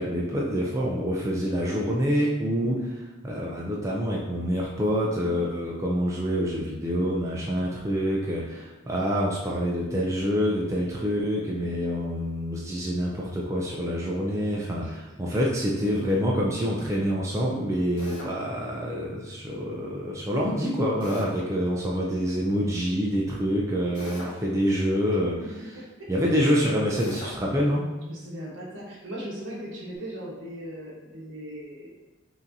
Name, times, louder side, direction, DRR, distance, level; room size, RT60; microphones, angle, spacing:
voice 1, 0.0-25.4 26.1-27.9, equal, 15° right, -3 dB, 0.4 m, -26 dB
Drill, 18.0-18.4 21.0-21.4 23.9-24.4 27.0-27.4, equal, 75° left, 1.2 m, -40 dB
voice 2, 25.7-26.3 28.1-31.9, equal, 70° right, -4 dB, 1.2 m, -38 dB
5.3 x 2.7 x 2.6 m, 1.1 s
head